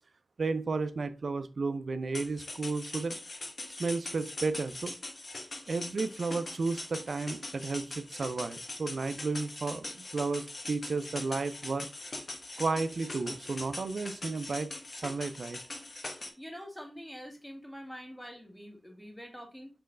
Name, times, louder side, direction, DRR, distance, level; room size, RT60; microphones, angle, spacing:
voice 1, 0.4-3.2 3.8-5.0 5.7-11.9 12.6-14.7 15.0-15.6, right 3 dB, 75° right, 11 dB, 0.5 m, -33 dB
sound 1, 2.1-16.3, left 2 dB, 60° left, 1.4 m, -42 dB
voice 2, 16.4-19.7, equal, 5° left, 2 dB, 1.7 m, -45 dB
4.6 x 3.1 x 3.7 m, 0.31 s
wide cardioid pair, 60°, 0 cm